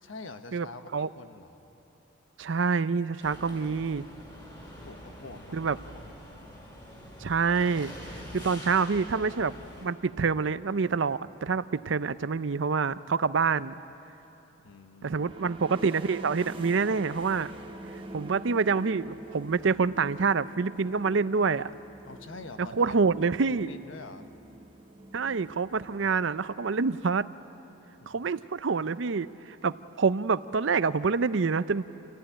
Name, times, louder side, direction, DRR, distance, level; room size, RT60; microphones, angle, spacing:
voice 1, 0.0-1.5 4.8-6.1 14.6-15.6 22.1-24.3 28.0-28.2, left 3 dB, 75° left, 8 dB, 1.2 m, -46 dB
voice 2, 2.4-4.0 5.5-5.8 7.2-7.9 8.3-9.5 9.8-13.8 15.0-17.5 18.1-21.7 22.7-23.7 25.1-27.3 28.1-31.8, right 5 dB, 65° right, 15 dB, 0.5 m, -27 dB
sound 1, 3.2-9.9, equal, 20° left, 4.2 m, -45 dB
sound 2, 15.0-26.6, right 1 dB, 25° right, 1.1 m, -45 dB
28.0 x 15.5 x 10.0 m, 3.0 s
head